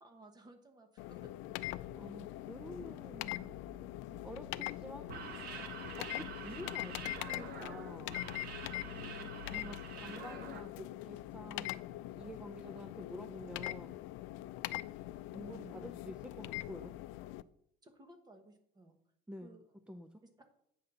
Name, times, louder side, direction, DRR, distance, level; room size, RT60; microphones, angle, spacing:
voice 1, 0.0-1.7 8.9-9.6 15.5-15.9 17.8-19.0 19.4-19.6 20.4-20.6, right 1 dB, 20° right, 6 dB, 1.2 m, -58 dB
sound 1, 1.0-17.4, left 16 dB, 90° left, 0.4 m, -43 dB
sound 2, 1.4-10.0, left 3 dB, 70° right, 3.4 m, -55 dB
voice 2, 1.9-3.6 4.2-5.1 5.5-5.6 6.0-8.2 9.5-14.1 15.3-16.9 19.3-19.5 19.9-20.2, equal, 5° right, 7 dB, 0.3 m, -49 dB
sound 3, 5.0-10.6, right 6 dB, 50° right, 1.2 m, -47 dB
8.7 x 4.1 x 6.7 m, 0.73 s
cardioid pair, 160°, 20 cm